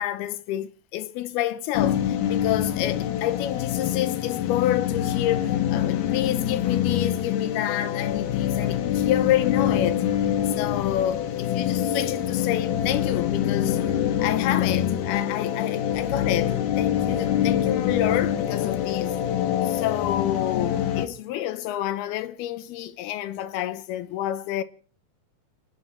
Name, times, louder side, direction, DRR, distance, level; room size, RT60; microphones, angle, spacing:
voice 1, 0.0-10.1 10.5-13.8 14.2-19.1 19.6-24.6, left 12 dB, 85° left, 2.9 m, -28 dB
sound 1, 1.7-21.1, left 10 dB, 65° left, 2.3 m, -25 dB
29.0 x 10.0 x 4.3 m
omnidirectional pair, 4.4 m